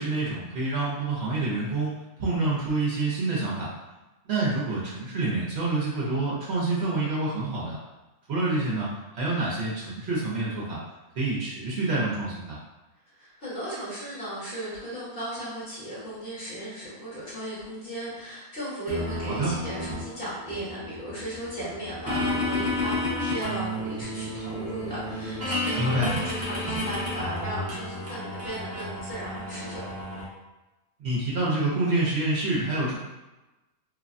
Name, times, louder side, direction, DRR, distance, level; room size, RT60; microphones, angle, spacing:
voice 1, 0.0-1.9 2.2-3.7 4.2-7.8 8.3-10.8 11.2-12.6 19.3-19.5 25.8-26.1 31.0-33.0, right 2 dB, 60° right, -6 dB, 0.8 m, -27 dB
voice 2, 13.2-29.8, right 1 dB, 45° left, -10 dB, 1.5 m, -36 dB
sound 1, 18.9-30.3, left 1 dB, 20° right, 0.4 m, -32 dB
3.2 x 2.1 x 2.5 m, 1.1 s
omnidirectional pair, 1.4 m